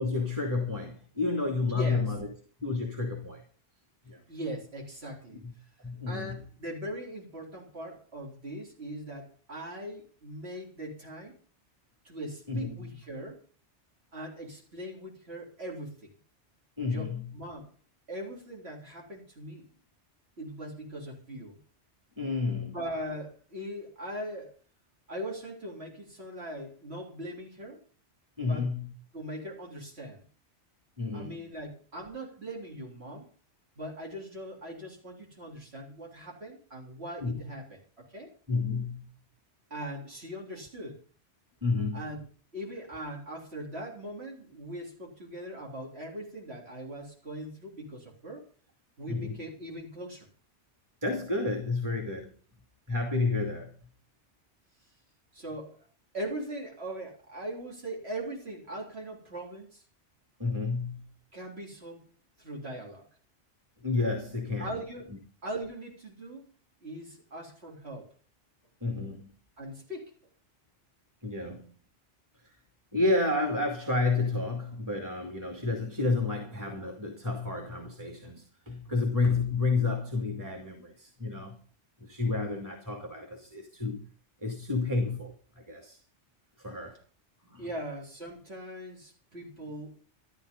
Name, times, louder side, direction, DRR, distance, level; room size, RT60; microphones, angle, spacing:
voice 1, 0.0-2.3 2.6-3.4 4.1-4.2 5.8-6.4 12.5-12.7 16.8-17.3 22.2-22.8 28.4-28.9 31.0-31.3 37.2-37.4 38.5-39.1 41.6-42.0 49.1-49.4 51.0-52.3 52.9-53.7 60.4-61.0 63.8-64.7 68.8-69.4 71.2-71.7 72.9-81.6 82.0-84.0 84.4-86.0 86.6-87.0 87.5-87.7, left 3 dB, 15° right, 1 dB, 2.7 m, -30 dB
voice 2, 1.7-2.0 4.3-5.4 6.1-11.3 12.0-13.4 14.1-16.1 16.9-17.7 18.1-19.7 20.4-21.6 22.7-24.5 25.1-27.8 28.4-28.7 29.1-30.3 31.1-33.3 33.8-37.8 38.1-38.3 39.7-41.0 41.9-42.2 42.5-48.5 49.0-50.3 55.3-55.9 56.1-59.8 61.3-62.1 62.4-63.1 64.6-65.1 65.4-66.5 66.8-68.1 69.6-70.1 87.6-90.0, right 1 dB, 60° right, -1 dB, 4.1 m, -40 dB
13.5 x 13.0 x 5.4 m, 0.42 s
omnidirectional pair, 1.2 m